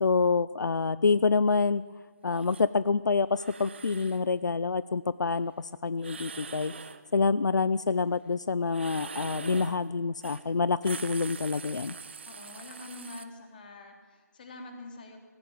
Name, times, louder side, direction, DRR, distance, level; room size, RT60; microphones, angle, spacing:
voice 1, 0.0-1.8 2.2-6.7 7.1-11.9, left 4 dB, 80° left, 16 dB, 0.7 m, -27 dB
sound 1, 2.3-2.6 3.3-4.2 6.0-7.0 8.7-9.8 10.2-10.4 10.7-13.2, right 5 dB, 40° right, 1.2 m, -43 dB
voice 2, 12.3-15.2, left 2 dB, 30° left, 4 dB, 3.2 m, -45 dB
19.5 x 17.5 x 9.5 m, 1.4 s
hypercardioid pair, 175°, 10 cm